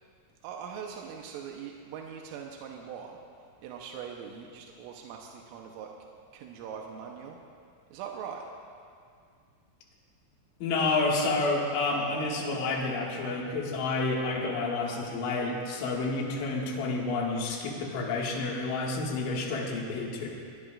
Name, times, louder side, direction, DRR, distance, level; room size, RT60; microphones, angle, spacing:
voice 1, 0.4-3.2 3.6-5.9 6.3-7.4 7.9-8.5 11.8-12.4, right 7 dB, 90° right, 0 dB, 3.5 m, -41 dB
voice 2, 10.6-20.3, left 3 dB, 75° left, -2 dB, 4.3 m, -29 dB
23.0 x 20.0 x 2.5 m, 2.3 s
omnidirectional pair, 5.7 m